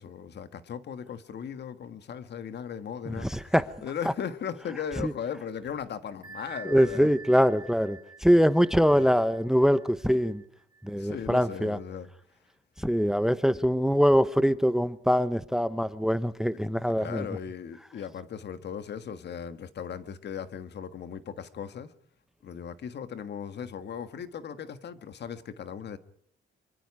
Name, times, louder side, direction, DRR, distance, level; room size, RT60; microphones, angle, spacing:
voice 1, 0.0-3.5 3.8-7.1 8.9-9.1 11.0-12.1 16.5-16.6 16.9-21.9 22.4-26.0, left 7 dB, 60° left, 1.7 m, -37 dB
voice 2, 3.1-3.7 4.0-4.1 5.0-5.1 6.6-10.4 10.8-11.8 12.8-17.3, equal, ahead, 0.9 m, -23 dB
Bell, 6.2-11.7, right 4 dB, 20° right, 4.6 m, -49 dB
25.5 x 24.0 x 4.9 m
cardioid pair, 90°, 20 cm